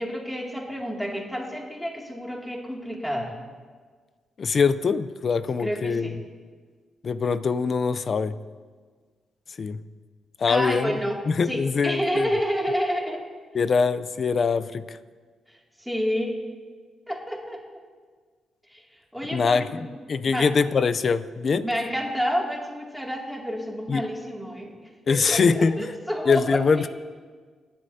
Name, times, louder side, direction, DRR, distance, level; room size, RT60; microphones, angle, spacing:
voice 1, 0.0-3.3 5.6-6.1 10.5-13.3 15.8-16.4 17.1-17.6 18.7-18.8 19.1-19.8 20.3-20.5 21.6-24.7 25.1-26.9, equal, ahead, -2 dB, 2.5 m, -29 dB
voice 2, 4.4-6.2 7.0-8.4 9.6-9.8 10.4-11.0 11.3-12.3 13.5-15.0 19.3-19.8 20.1-21.7 23.9-24.1 25.1-25.9 26.3-26.9, left 5 dB, 45° left, 14 dB, 0.6 m, -23 dB
28.5 x 11.5 x 2.8 m, 1.5 s
cardioid pair, 105°, 0 cm